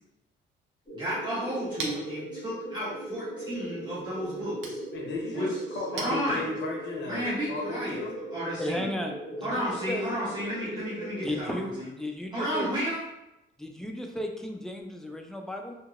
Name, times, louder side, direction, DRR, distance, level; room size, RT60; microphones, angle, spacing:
sound 1, 0.9-11.4, right 1 dB, 25° left, 1.3 m, -39 dB
voice 1, 0.9-4.8 5.3-5.5 5.9-6.5 7.1-8.0 8.3-8.9 9.4-11.9 12.3-13.0, equal, 20° right, -9 dB, 0.8 m, -32 dB
Chink clink, 1.2-6.9, right 4 dB, 70° right, 0.6 m, -44 dB
voice 2, 4.9-7.2 7.5-8.2, left 3 dB, 65° left, 0 dB, 0.8 m, -35 dB
voice 3, 8.6-10.1 11.2-12.7 13.6-15.8, left 1 dB, ahead, 3 dB, 0.4 m, -34 dB
2.8 x 2.8 x 2.4 m, 0.93 s
cardioid pair, 90°, 20 cm